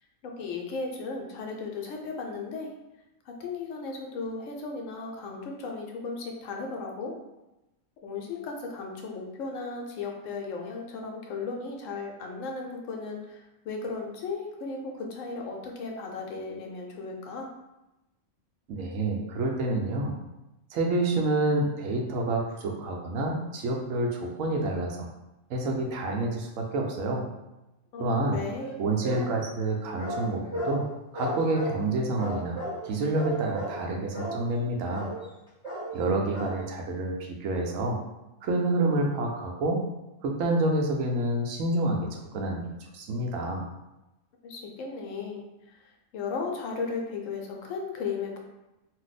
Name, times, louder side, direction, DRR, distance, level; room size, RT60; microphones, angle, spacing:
voice 1, 0.2-2.7 3.3-7.1 8.0-17.5 27.9-28.7 44.4-45.8 46.1-48.4, left 4 dB, 75° left, 1 dB, 0.9 m, -36 dB
voice 2, 18.7-20.1 20.7-25.1 25.5-27.2 28.0-28.4 28.8-30.9 31.1-35.1 35.9-38.0 38.4-39.8 40.2-42.6 42.9-43.6, right 2 dB, 80° right, 1 dB, 1.0 m, -28 dB
sound 1, 28.5-29.3 30.0-30.8 31.1-31.8 32.2-32.8 33.1-33.8 34.1-34.4 34.9-35.3 35.6-36.0 36.3-36.6, equal, 5° right, 0.7 m, -35 dB
2.6 x 2.1 x 4.0 m, 0.97 s
omnidirectional pair, 1.4 m